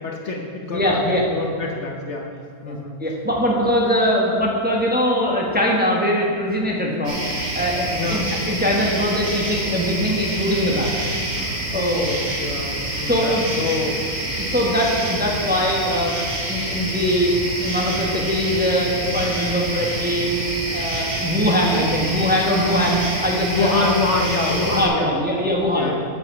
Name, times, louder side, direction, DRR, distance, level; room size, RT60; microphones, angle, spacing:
voice 1, 0.0-2.3 2.6-3.0 7.9-8.2 11.4-14.0 23.5-25.5 25.7-26.0, left 3 dB, 55° left, 0 dB, 1.1 m, -26 dB
voice 2, 0.7-1.3 2.6-11.4 11.7-12.0 13.0-13.4 14.3-16.2 16.5-17.3 17.6-20.3 20.7-23.9 24.6-25.9, equal, 5° right, -2 dB, 1.2 m, -22 dB
sound 1, 7.0-24.8, right 1 dB, 60° right, 2.3 m, -27 dB
8.0 x 7.8 x 7.2 m, 2.2 s
omnidirectional pair, 1.6 m